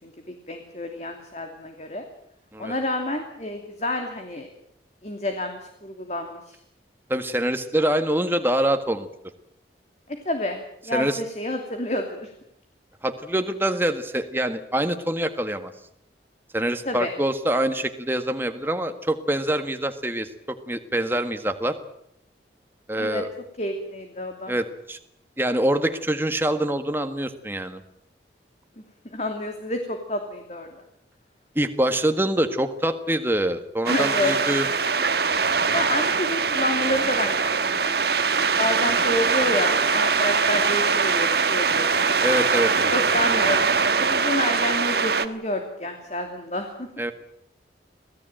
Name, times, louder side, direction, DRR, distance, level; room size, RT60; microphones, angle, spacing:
voice 1, 0.0-2.0 2.6-4.5 5.0-6.6 10.2-12.3 16.9-17.1 23.0-23.2 23.6-24.5 29.0-30.7 33.9-34.3 35.7-42.2 42.9-43.7 44.0-46.9, left 1 dB, 40° left, 4 dB, 2.8 m, -29 dB
voice 2, 7.1-9.1 10.9-11.2 13.0-15.7 16.5-21.7 22.9-23.3 24.5-25.0 25.4-27.8 31.5-34.7 42.2-42.7 47.0-47.1, right 1 dB, 10° right, 7 dB, 1.6 m, -25 dB
sound 1, 33.9-45.3, right 5 dB, 60° right, 1.4 m, -22 dB
26.0 x 17.0 x 9.0 m, 0.75 s
head